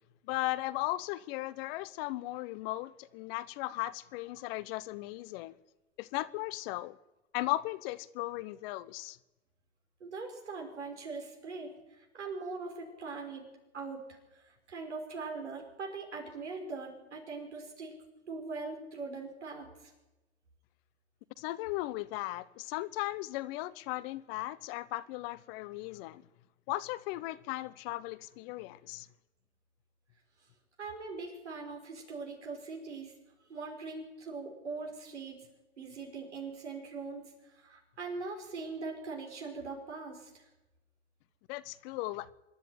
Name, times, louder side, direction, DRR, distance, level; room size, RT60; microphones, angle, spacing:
voice 1, 0.3-5.6 6.0-7.0 7.3-9.2 21.4-26.2 26.7-29.1 41.5-42.3, left 18 dB, 60° left, 1.0 m, -37 dB
voice 2, 10.0-11.7 12.1-13.4 13.7-14.0 14.3-17.9 18.3-19.9 30.8-33.1 33.5-35.4 35.8-40.4, right 4 dB, 90° right, 5.6 m, -41 dB
25.5 x 11.0 x 9.6 m
hypercardioid pair, 85°, 34 cm